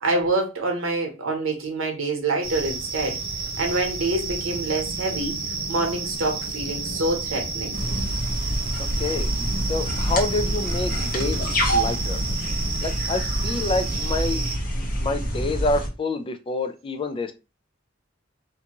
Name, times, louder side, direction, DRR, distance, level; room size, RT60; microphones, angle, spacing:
voice 1, 0.0-3.2 3.6-5.4 5.7-7.8, right 2 dB, 85° right, 0.9 m, -26 dB
sound 1, 2.4-14.6, right 3 dB, 50° right, 0.8 m, -31 dB
sound 2, 7.7-15.9, equal, 45° left, 0.8 m, -27 dB
voice 2, 9.0-9.3 9.7-12.2 12.8-14.5 14.8-17.3, left 2 dB, 25° left, 0.3 m, -27 dB
2.6 x 2.3 x 2.9 m
head